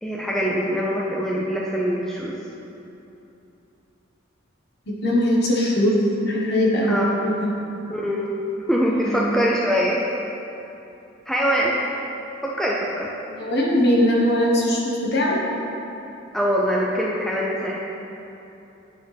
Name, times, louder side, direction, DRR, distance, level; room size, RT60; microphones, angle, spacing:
voice 1, 0.0-2.4 6.9-7.2 7.9-8.4 8.7-10.0 11.3-11.7 12.4-13.1 16.3-17.8, equal, ahead, -4 dB, 0.4 m, -23 dB
voice 2, 4.9-7.0 7.2-7.4 9.0-9.3 13.3-15.4, left 1 dB, 55° left, -4 dB, 1.2 m, -20 dB
9.1 x 4.2 x 3.3 m, 3.0 s
head